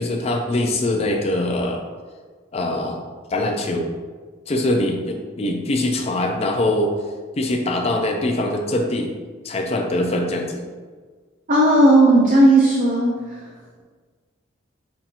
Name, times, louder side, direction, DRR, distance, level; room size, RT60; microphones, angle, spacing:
voice 1, 0.0-1.8 2.5-3.0 3.3-3.9 4.5-7.0 7.4-9.1 9.4-10.7, left 1 dB, 30° left, 2 dB, 0.4 m, -23 dB
voice 2, 11.5-13.2, right 1 dB, 40° right, -4 dB, 0.5 m, -14 dB
5.4 x 2.8 x 2.5 m, 1.5 s
head